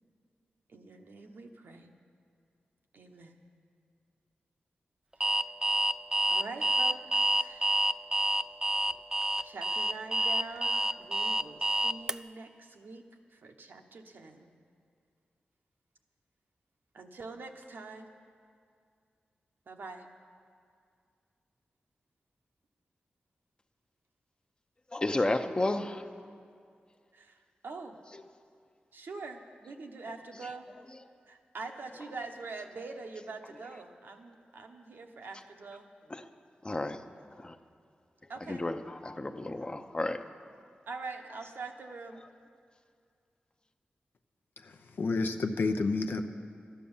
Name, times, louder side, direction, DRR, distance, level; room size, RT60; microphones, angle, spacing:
voice 1, 0.7-1.9 2.9-3.4 5.2-5.4 6.3-7.8 9.4-14.5 16.9-18.1 19.7-20.1 27.1-28.0 28.9-30.7 31.3-35.9 38.3-38.6 40.9-42.2, right 3 dB, 75° right, 3 dB, 1.0 m, -44 dB
Alarm, 5.2-12.1, right 1 dB, 20° right, 0.3 m, -28 dB
voice 2, 24.9-26.1 28.1-28.2 36.1-36.2 36.6-37.0 37.4-37.6 38.5-40.2, left 2 dB, 25° left, 8 dB, 0.7 m, -32 dB
voice 3, 44.6-46.3, left 3 dB, 75° left, 6 dB, 0.8 m, -30 dB
13.0 x 10.0 x 7.2 m, 2.3 s
cardioid pair, 65°, 4 cm